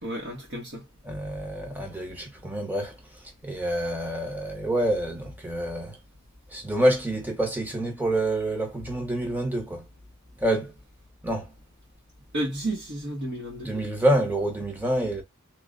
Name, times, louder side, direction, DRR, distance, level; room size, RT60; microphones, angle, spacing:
voice 1, 0.0-0.8 12.3-13.7, right 1 dB, 50° right, 1.1 m, -32 dB
voice 2, 1.0-6.0 6.5-9.9 10.4-10.7 11.2-11.5 13.6-15.2, right 1 dB, 10° right, 1.0 m, -27 dB
3.2 x 2.4 x 3.8 m
head